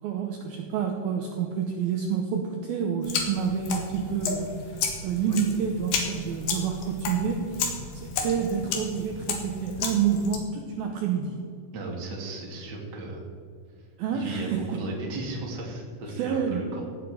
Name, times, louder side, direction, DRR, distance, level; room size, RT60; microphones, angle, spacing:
voice 1, 0.0-11.4 14.0-14.8 16.2-16.8, right 7 dB, 75° right, 2 dB, 2.4 m, -28 dB
sound 1, 3.0-10.4, left 5 dB, 65° left, 3.4 m, -32 dB
voice 2, 11.7-13.2 14.1-16.8, right 2 dB, 30° right, -1 dB, 2.1 m, -35 dB
16.5 x 8.2 x 5.0 m, 2.3 s
omnidirectional pair, 5.2 m